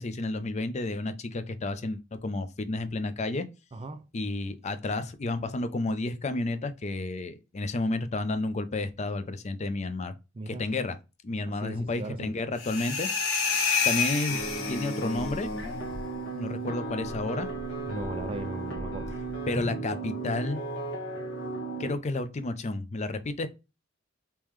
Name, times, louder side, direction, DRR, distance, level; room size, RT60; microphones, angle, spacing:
voice 1, 0.0-3.5 4.1-10.1 10.5-11.0 11.2-13.1 13.8-14.4 14.7-15.5 16.3-17.5 19.5-20.6 21.8-23.5, left 2 dB, 35° left, 0.5 m, -31 dB
voice 2, 3.7-4.0 10.3-10.6 11.6-12.3 17.9-19.1, right 2 dB, 25° right, 0.4 m, -37 dB
sound 1, 12.6-15.3, left 5 dB, 85° left, 1.1 m, -28 dB
sound 2, 14.3-21.9, right 2 dB, 65° left, 1.2 m, -35 dB
3.6 x 2.9 x 3.1 m
head